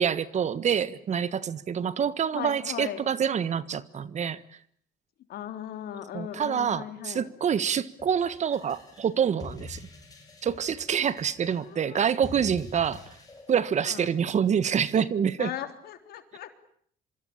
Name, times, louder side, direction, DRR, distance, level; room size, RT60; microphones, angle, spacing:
voice 1, 0.0-4.4 6.1-9.8 10.4-13.0 13.5-15.5, right 8 dB, 45° right, 1.5 m, -26 dB
voice 2, 2.3-3.0 5.3-7.3 11.5-12.1 13.8-14.1 15.4-16.5, left 11 dB, 70° left, 3.5 m, -38 dB
sound 1, 8.0-13.6, left 4 dB, 20° left, 7.3 m, -46 dB
26.0 x 25.0 x 8.8 m
cardioid pair, 110°, 17 cm